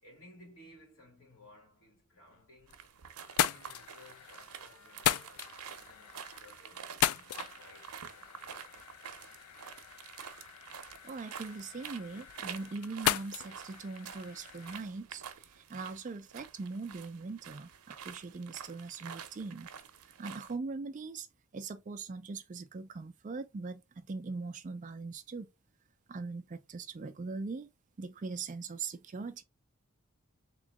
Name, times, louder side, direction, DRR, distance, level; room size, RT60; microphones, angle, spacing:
voice 1, 0.0-2.8 3.4-10.1, left 1 dB, 60° left, 2.6 m, -59 dB
sound 1, 2.3-2.9 3.2-14.8, left 11 dB, 80° left, 0.3 m, -37 dB
sound 2, 2.7-20.5, right 8 dB, 90° right, 0.6 m, -48 dB
voice 2, 11.0-19.7 20.2-21.3 21.5-25.5 26.1-27.7 28.0-29.4, right 4 dB, 35° right, 0.3 m, -41 dB
3.6 x 3.0 x 3.4 m
head